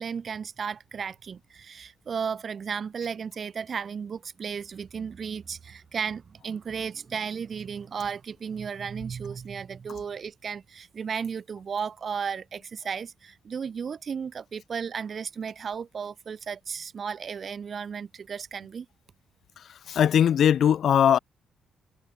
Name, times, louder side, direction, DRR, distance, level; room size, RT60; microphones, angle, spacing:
voice 1, 0.0-18.9, right 6 dB, 45° right, 0.9 m, -34 dB
voice 2, 19.6-21.2, left 9 dB, 65° left, 1.2 m, -21 dB
cardioid pair, 90°, 0 cm